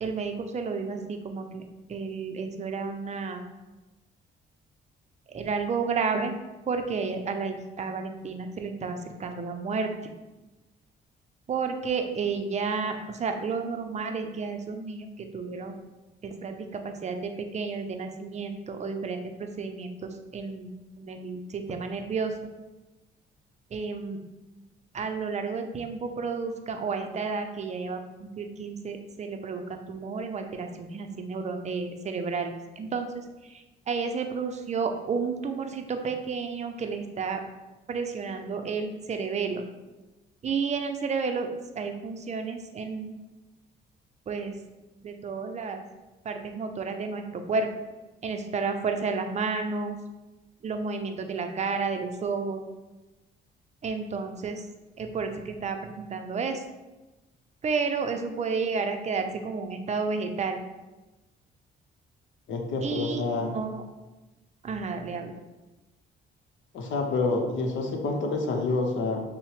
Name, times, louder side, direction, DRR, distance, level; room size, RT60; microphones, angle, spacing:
voice 1, 0.0-1.6 1.9-3.4 5.3-6.3 6.7-9.9 11.5-15.8 16.2-20.7 21.0-22.5 23.7-24.2 24.9-33.1 33.9-37.4 37.9-39.6 40.4-41.5 41.8-43.1 44.3-44.6 45.0-45.8 46.2-47.7 48.2-50.0 50.6-52.6 53.8-54.6 55.0-56.6 57.6-60.6 62.8-63.8 64.6-65.3, right 5 dB, 35° right, 6 dB, 0.5 m, -31 dB
voice 2, 62.5-63.5 66.7-69.2, left 3 dB, 75° left, 3 dB, 0.7 m, -28 dB
5.5 x 2.1 x 3.1 m, 1.1 s
cardioid pair, 90°, 20 cm